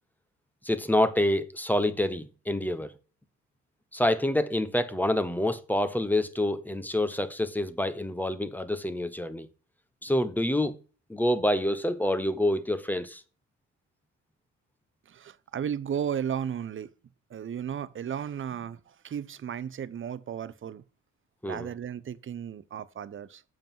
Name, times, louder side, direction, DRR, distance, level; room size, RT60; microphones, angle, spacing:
voice 1, 0.6-2.9 3.9-9.5 10.0-10.8 11.1-13.2 21.4-21.7, left 1 dB, 5° left, 1.0 m, -27 dB
voice 2, 15.1-16.9 17.3-20.8 21.4-23.4, right 8 dB, 40° right, 0.7 m, -34 dB
7.4 x 5.3 x 5.4 m
cardioid pair, 90°, 30 cm